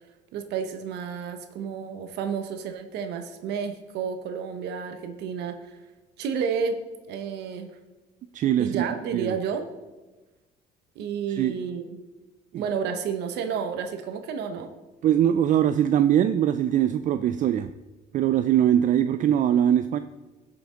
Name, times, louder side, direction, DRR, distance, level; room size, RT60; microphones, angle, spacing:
voice 1, 0.3-5.8 6.2-6.8 7.1-7.7 8.6-9.7 11.0-11.8 12.5-14.7, right 6 dB, 80° right, 7 dB, 0.9 m, -31 dB
voice 2, 8.3-8.8 9.1-9.3 11.4-11.6 12.5-12.6 15.0-17.7 18.1-20.0, right 10 dB, 50° right, 11 dB, 0.4 m, -22 dB
14.5 x 6.0 x 3.8 m, 1.2 s
cardioid pair, 110°, 17 cm